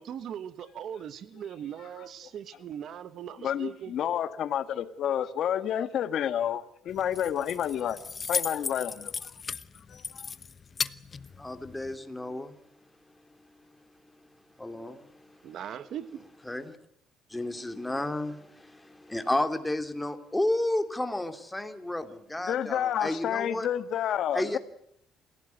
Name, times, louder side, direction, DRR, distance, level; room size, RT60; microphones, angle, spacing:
voice 1, 0.0-3.9 15.4-16.2, right 9 dB, 60° right, 1.4 m, -39 dB
voice 2, 3.4-8.0 8.3-9.3 9.9-10.3 22.5-24.6, left 10 dB, 60° left, 1.7 m, -30 dB
Keys jangling, 6.9-11.9, left 5 dB, 30° left, 1.0 m, -36 dB
voice 3, 11.4-12.6 14.6-15.5 16.5-16.8 17.3-23.7 24.3-24.6, left 1 dB, 10° left, 2.8 m, -32 dB
28.0 x 16.5 x 9.3 m
cardioid pair, 105°, 0 cm